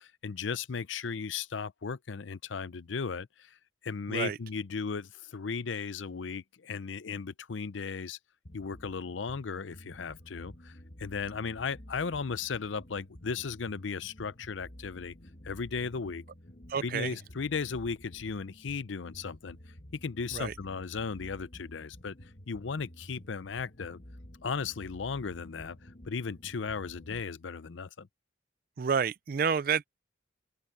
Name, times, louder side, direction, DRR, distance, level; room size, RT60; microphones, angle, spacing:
voice 1, 0.0-3.6 3.8-8.2 8.5-15.1 15.4-16.2 16.8-19.6 19.9-22.1 22.5-24.0 24.4-28.1, left 5 dB, 90° left, 0.6 m, -36 dB
sound 1, 8.4-27.2, equal, 50° left, 1.9 m, -51 dB
voice 2, 16.7-17.2 20.3-20.5 28.8-29.9, right 6 dB, 50° right, 0.4 m, -29 dB
open air
head